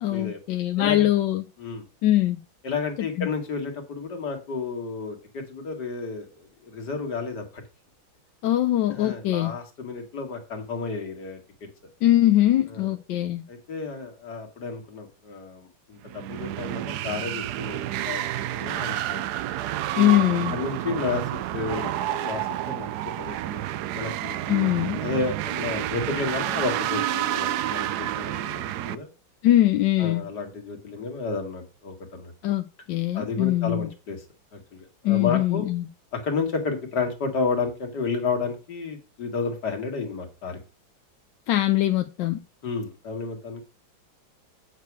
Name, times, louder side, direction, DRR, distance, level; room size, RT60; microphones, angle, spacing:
voice 1, 0.0-1.4 2.0-2.4 3.2-3.3 8.4-9.5 12.0-13.4 20.0-20.6 24.5-25.0 29.4-30.2 32.4-33.9 35.0-35.9 41.5-42.4, left 14 dB, 75° left, 1.2 m, -22 dB
voice 2, 0.8-1.1 1.6-1.8 2.6-7.6 8.9-11.7 12.7-12.9 13.5-19.2 19.9-21.2 21.5-24.4 25.0-29.1 30.0-32.3 33.1-34.2 34.5-35.7 36.1-40.6 42.6-43.6, left 4 dB, 55° left, 2.3 m, -32 dB
sound 1, 16.1-29.0, right 13 dB, 75° right, 0.9 m, -29 dB
8.4 x 6.7 x 4.7 m
omnidirectional pair, 2.2 m